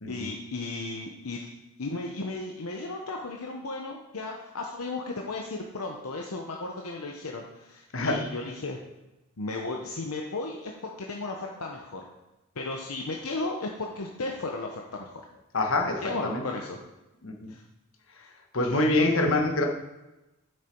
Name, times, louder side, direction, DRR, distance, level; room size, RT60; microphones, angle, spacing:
voice 1, 0.1-1.5 1.8-8.8 9.4-12.1 12.6-15.2 16.0-16.8 17.5-17.6 18.6-19.2, left 3 dB, 90° left, 1 dB, 0.9 m, -35 dB
voice 2, 7.9-8.2 15.5-16.4 17.2-17.5 18.5-19.6, left 2 dB, 65° left, 3 dB, 1.3 m, -25 dB
9.0 x 6.7 x 4.5 m, 1.0 s
head